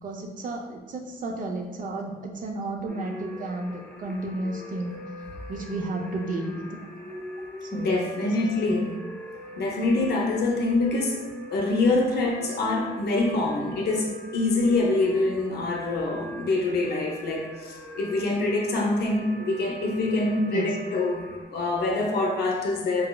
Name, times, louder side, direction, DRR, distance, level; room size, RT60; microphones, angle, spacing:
voice 1, 0.0-5.0 5.5-6.8 7.6-8.9 20.4-20.7, right 2 dB, 55° right, 2 dB, 0.5 m, -33 dB
sound 1, 2.9-21.4, left 1 dB, 10° left, 0.5 m, -41 dB
voice 2, 7.7-9.0 9.6-11.3 11.5-23.1, left 2 dB, 80° left, 0 dB, 0.5 m, -25 dB
3.9 x 2.0 x 2.2 m, 1.1 s
wide cardioid pair, 125°, 16 cm